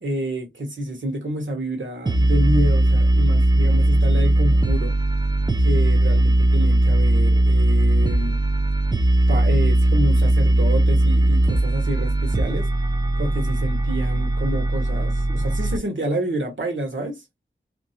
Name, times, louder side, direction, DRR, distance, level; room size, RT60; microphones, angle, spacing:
voice 1, 0.0-5.0 5.6-8.4 9.3-12.7 13.2-17.2, right 1 dB, 85° right, 1.3 m, -28 dB
sound 1, 2.1-15.8, right 1 dB, 20° right, 0.4 m, -19 dB
2.9 x 2.8 x 2.7 m
wide cardioid pair, 45°, 19 cm